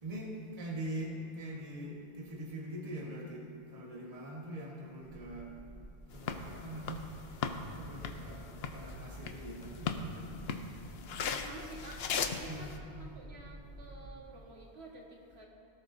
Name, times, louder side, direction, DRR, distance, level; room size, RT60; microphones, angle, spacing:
voice 1, 0.0-5.5 6.1-10.3 12.5-12.7, right 1 dB, 35° right, -2 dB, 1.6 m, -43 dB
sound 1, 5.0-14.2, right 1 dB, 5° left, 3.1 m, -51 dB
sound 2, 6.1-12.8, left 6 dB, 70° left, 0.9 m, -39 dB
voice 2, 11.2-15.5, right 1 dB, 75° right, -3 dB, 1.9 m, -50 dB
17.5 x 12.5 x 2.7 m, 2.5 s
omnidirectional pair, 1.1 m